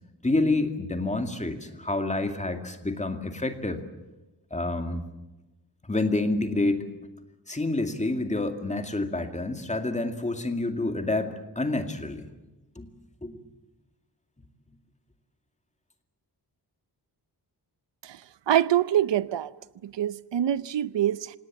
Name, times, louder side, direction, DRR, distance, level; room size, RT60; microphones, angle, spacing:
voice 1, 0.2-3.8 4.5-5.0 5.9-6.8 7.5-12.3 12.8-12.9 13.2-13.4, left 2 dB, 15° left, 2.3 m, -28 dB
voice 2, 18.5-19.5 19.8-21.4, right 11 dB, 85° right, 0.8 m, -25 dB
27.0 x 18.5 x 9.2 m
wide cardioid pair, 160°, 42 cm